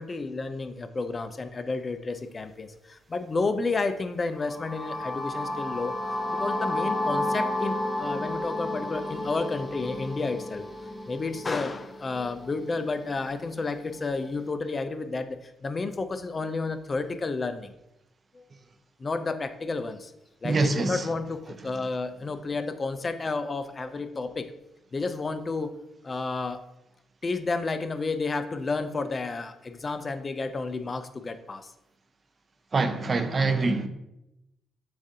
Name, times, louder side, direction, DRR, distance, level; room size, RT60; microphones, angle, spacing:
voice 1, 0.0-10.7 11.1-17.7 18.3-18.4 19.0-20.1 20.4-24.5 24.9-25.8 26.0-26.7 27.2-31.7, left 3 dB, 30° left, 9 dB, 0.3 m, -31 dB
sound 1, 4.4-12.3, left 1 dB, 10° left, 0.7 m, -31 dB
voice 2, 20.4-21.0 32.7-33.9, right 3 dB, 35° right, 8 dB, 0.4 m, -24 dB
7.1 x 2.4 x 2.7 m, 0.89 s
cardioid pair, 90°, 0 cm